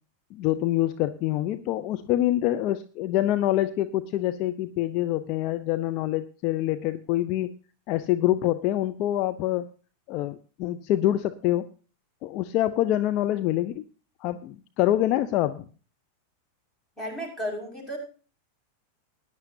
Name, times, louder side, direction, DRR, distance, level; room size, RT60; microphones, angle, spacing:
voice 1, 0.3-7.5 7.9-9.7 10.1-11.7 12.2-13.8 14.2-15.6, left 14 dB, 40° left, 10 dB, 0.6 m, -26 dB
voice 2, 17.0-18.0, equal, 5° left, -1 dB, 5.6 m, -33 dB
19.5 x 10.5 x 2.7 m, 0.38 s
figure-of-eight pair, 90°, 0 cm